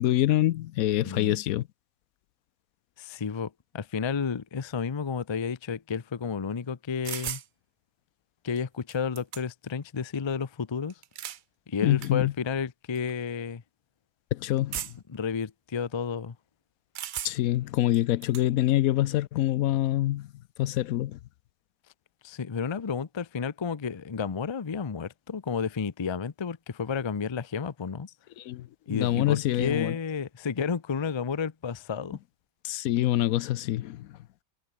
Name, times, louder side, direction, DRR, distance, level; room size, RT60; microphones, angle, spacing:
voice 1, 0.0-1.7 11.8-12.3 14.3-14.9 17.2-20.3 20.6-21.2 28.4-30.0 32.6-34.1, left 14 dB, 75° left, 1.0 m, -26 dB
voice 2, 1.0-1.4 3.0-7.4 8.4-10.9 11.7-13.6 15.1-16.4 22.2-28.1 28.9-32.2, left 6 dB, 35° left, 0.5 m, -31 dB
sound 1, 7.0-7.5 8.6-8.7 8.9-9.7 10.9-11.4 12.0-12.1 12.9-13.1 14.7-15.1 16.9-17.6 17.9-18.5, right 10 dB, 80° right, 0.4 m, -36 dB
omnidirectional pair, 1.5 m